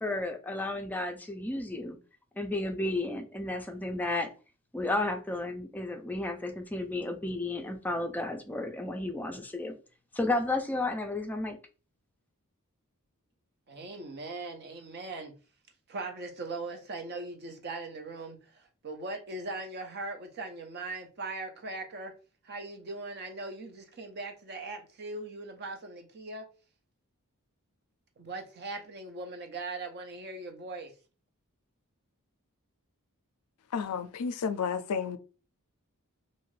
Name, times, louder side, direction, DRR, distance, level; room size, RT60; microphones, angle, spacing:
voice 1, 0.0-2.0 2.4-4.3 4.7-9.8 10.1-11.6, left 2 dB, 10° left, 0.4 m, -32 dB
voice 2, 13.7-15.3 15.9-22.1 22.4-26.5 28.2-30.9, right 3 dB, 50° right, 0.6 m, -40 dB
voice 3, 33.7-35.2, left 6 dB, 85° left, 0.4 m, -31 dB
2.6 x 2.4 x 3.1 m
head